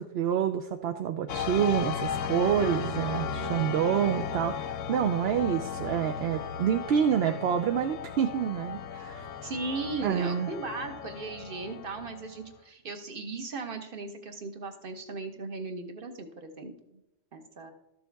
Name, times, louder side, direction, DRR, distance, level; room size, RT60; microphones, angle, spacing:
voice 1, 0.0-9.3 10.0-10.5, right 8 dB, 60° right, 7 dB, 0.7 m, -27 dB
sound 1, 1.3-12.5, left 7 dB, 85° left, 1.0 m, -36 dB
voice 2, 2.5-3.9 9.4-16.7 17.3-17.7, right 3 dB, 45° right, 6 dB, 1.3 m, -37 dB
13.0 x 6.9 x 3.4 m, 0.89 s
omnidirectional pair, 1.3 m